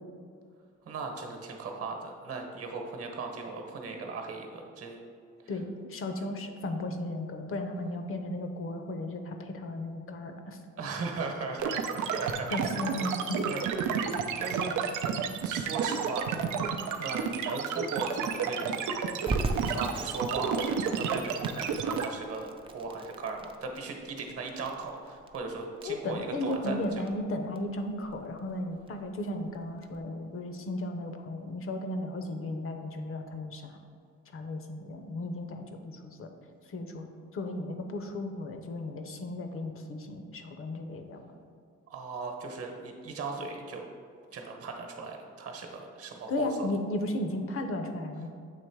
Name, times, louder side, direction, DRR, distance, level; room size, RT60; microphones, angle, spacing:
voice 1, 0.8-5.0 10.8-12.7 12.9-13.1 13.4-13.6 13.9-14.0 14.4-15.2 15.4-16.3 17.0-18.8 19.7-26.8 41.9-43.8 44.3-46.5, right 4 dB, 50° right, 3 dB, 1.0 m, -37 dB
voice 2, 5.5-10.6 12.5-13.4 25.8-33.8 34.3-36.3 36.7-37.1 37.3-41.2 46.3-48.3, left 1 dB, 45° left, 6 dB, 0.7 m, -35 dB
sound 1, 11.6-22.1, right 7 dB, 85° right, 0.5 m, -31 dB
Crackle, 19.3-30.0, right 2 dB, 20° right, 0.4 m, -40 dB
7.4 x 3.0 x 4.6 m, 2.2 s
cardioid pair, 90°, 30 cm